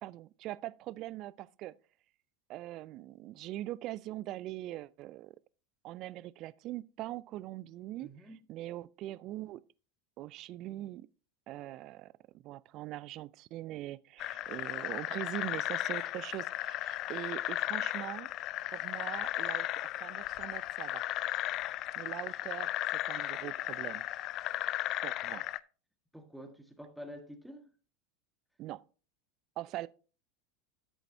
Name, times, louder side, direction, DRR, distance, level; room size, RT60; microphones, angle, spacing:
voice 1, 0.0-1.7 2.5-5.3 5.8-8.1 8.5-9.6 10.2-11.1 11.5-18.3 18.7-19.7 20.0-21.0 22.0-22.7 23.1-24.0 25.0-25.4 28.6-28.8 29.6-29.9, right 15 dB, 50° right, 0.4 m, -42 dB
voice 2, 8.0-8.4 26.1-27.7, equal, ahead, 1.5 m, -48 dB
sound 1, 14.2-25.6, left 15 dB, 45° left, 0.4 m, -35 dB
10.5 x 7.9 x 2.7 m
hypercardioid pair, 90°, 0 cm